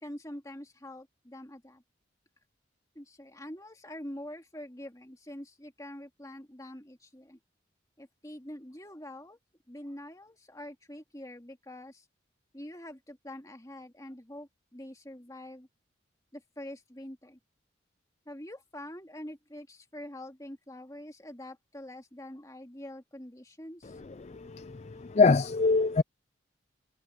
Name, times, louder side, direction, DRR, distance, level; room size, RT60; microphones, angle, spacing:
voice 1, 0.0-1.8 2.9-7.4 8.0-9.4 9.7-12.1 12.5-15.7 16.3-17.4 18.3-24.0, left 1 dB, 20° left, 2.2 m, -45 dB
voice 2, 24.3-26.0, left 4 dB, 35° left, 0.4 m, -24 dB
head